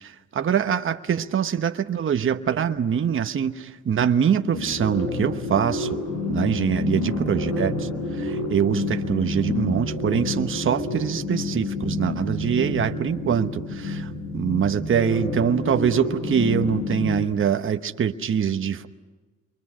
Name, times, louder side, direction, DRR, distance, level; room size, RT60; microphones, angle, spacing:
voice 1, 0.0-6.0 6.3-18.9, right 8 dB, 45° right, 8 dB, 1.1 m, -24 dB
sound 1, 4.5-17.3, left 2 dB, 65° left, 5.1 m, -28 dB
27.5 x 23.5 x 6.2 m, 1.3 s
cardioid pair, 90°, 30 cm